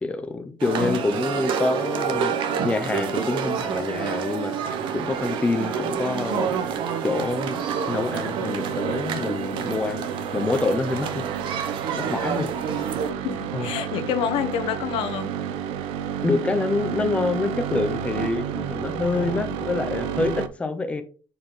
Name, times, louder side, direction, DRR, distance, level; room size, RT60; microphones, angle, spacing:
voice 1, 0.0-2.4 2.6-4.5 4.9-6.5 7.0-7.6 7.9-11.2 11.9-12.5 13.5-13.7 16.2-21.0, left 3 dB, 10° left, 0.7 m, -26 dB
sound 1, 0.6-13.1, right 7 dB, 60° right, 0.8 m, -29 dB
sound 2, 4.6-20.5, right 8 dB, 85° right, 0.6 m, -31 dB
voice 2, 13.2-15.3 19.1-19.5, left 9 dB, 70° left, 0.9 m, -28 dB
6.9 x 4.2 x 3.8 m
cardioid pair, 165°, 10 cm